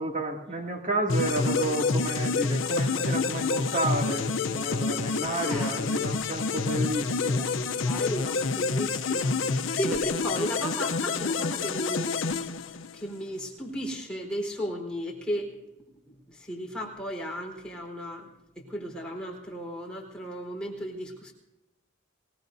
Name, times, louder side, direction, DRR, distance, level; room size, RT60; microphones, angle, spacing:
voice 1, 0.0-7.5, right 1 dB, 40° right, 1 dB, 2.5 m, -31 dB
sound 1, 1.1-13.2, left 4 dB, 85° left, 0.7 m, -28 dB
voice 2, 5.3-5.8 7.8-12.2 12.5-12.7 12.9-15.6 16.1-18.3 18.6-21.3, equal, 5° left, -2 dB, 4.4 m, -35 dB
26.0 x 19.0 x 2.7 m, 0.93 s
head